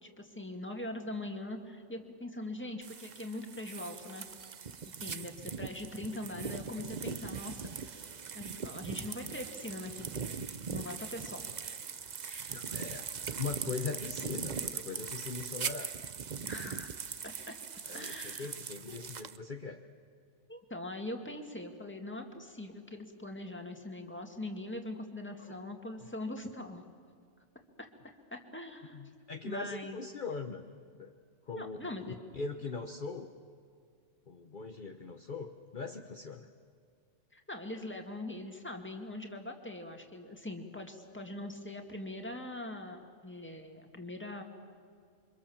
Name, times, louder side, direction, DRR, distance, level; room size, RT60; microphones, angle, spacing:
voice 1, 0.0-4.3 5.0-8.0 8.3-11.4 12.2-12.7 16.4-17.6 17.9-18.5 20.5-26.8 27.8-27.9 28.3-29.0 29.4-30.0 31.6-32.2 37.3-44.4, left 1 dB, 10° left, 3 dB, 2.2 m, -42 dB
sound 1, 2.8-19.4, right 6 dB, 40° right, 0.8 m, -41 dB
voice 2, 12.5-15.9 17.9-19.8 25.5-25.6 28.9-30.7 31.0-31.1 31.5-33.3 34.3-36.5, left 4 dB, 45° left, 5 dB, 1.1 m, -40 dB
28.0 x 24.5 x 7.2 m, 2.2 s
omnidirectional pair, 1.2 m